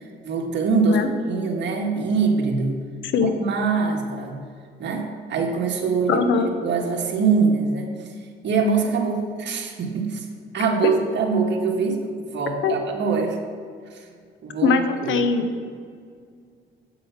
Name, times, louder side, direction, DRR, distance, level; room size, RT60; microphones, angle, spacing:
voice 1, 0.2-2.8 3.2-4.4 4.8-7.9 8.4-10.3 10.5-13.4 13.9-14.1 14.4-15.2, right 4 dB, 65° right, 2 dB, 1.6 m, -23 dB
voice 2, 6.1-6.5 12.6-12.8 14.6-15.5, left 5 dB, 75° left, 8 dB, 1.0 m, -21 dB
8.4 x 7.7 x 5.8 m, 2.1 s
cardioid pair, 90°, 20 cm